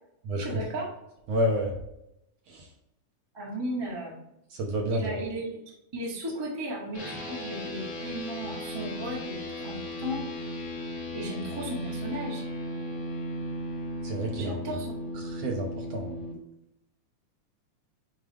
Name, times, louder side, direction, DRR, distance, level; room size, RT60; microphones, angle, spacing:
voice 1, 0.4-1.0 3.3-4.2 4.9-5.6 5.9-10.5 11.1-12.4 14.3-14.9, equal, 30° right, -4 dB, 0.5 m, -35 dB
voice 2, 1.3-1.7 2.5-2.6 4.5-5.1 14.0-14.6 15.3-16.2, equal, 65° right, 1 dB, 1.7 m, -29 dB
sound 1, 6.9-16.3, left 1 dB, 35° left, 1.2 m, -36 dB
9.2 x 3.3 x 3.4 m, 0.83 s
omnidirectional pair, 3.7 m